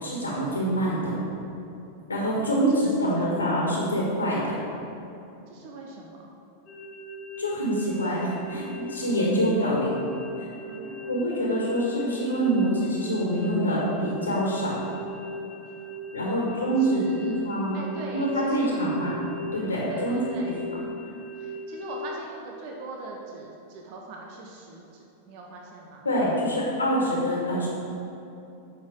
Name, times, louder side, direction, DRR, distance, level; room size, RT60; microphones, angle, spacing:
voice 1, 0.0-1.2 2.1-4.6 7.4-10.0 10.4-10.5 11.1-14.8 16.1-17.8 18.1-19.1 19.5-20.2 20.5-20.6 26.1-27.7, equal, 75° left, -4 dB, 1.7 m, -25 dB
voice 2, 2.3-3.3 5.5-6.3 10.7-11.8 15.8-15.9 16.2-18.7 19.9-20.5 21.4-26.1, right 3 dB, 45° right, 0 dB, 0.9 m, -42 dB
sound 1, 6.7-22.1, left 1 dB, 30° left, 1.5 m, -39 dB
8.6 x 5.9 x 5.3 m, 2.9 s
figure-of-eight pair, 90°, 0 cm